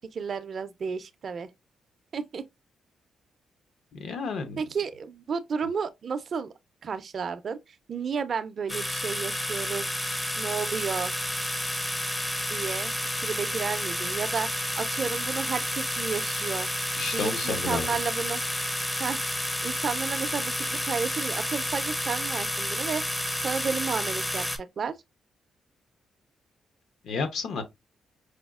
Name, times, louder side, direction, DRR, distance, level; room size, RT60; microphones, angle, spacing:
voice 1, 0.1-1.5 2.1-2.4 4.6-6.5 6.8-7.6 7.9-9.9 10.4-11.1 12.5-16.7 17.0-18.4 19.0-19.2 19.6-24.9, right 6 dB, 50° right, 0.4 m, -32 dB
voice 2, 4.0-4.6 17.0-17.9 27.0-27.6, left 4 dB, 70° left, 0.7 m, -31 dB
sound 1, 8.7-24.6, left 1 dB, 10° left, 0.5 m, -30 dB
4.8 x 2.3 x 2.3 m
cardioid pair, 110°, 0 cm